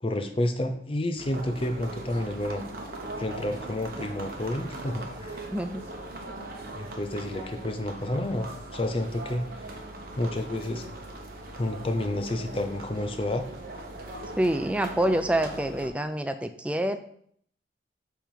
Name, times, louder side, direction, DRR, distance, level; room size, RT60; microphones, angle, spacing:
voice 1, 0.0-2.6 3.2-5.4 6.7-9.4 10.2-10.8 11.6-13.4, left 1 dB, 30° left, 7 dB, 0.6 m, -30 dB
sound 1, 1.2-15.9, right 2 dB, 50° right, 1.0 m, -40 dB
voice 2, 5.5-5.8 14.4-17.0, right 1 dB, 5° right, 8 dB, 0.3 m, -26 dB
7.4 x 3.5 x 5.4 m, 0.64 s
head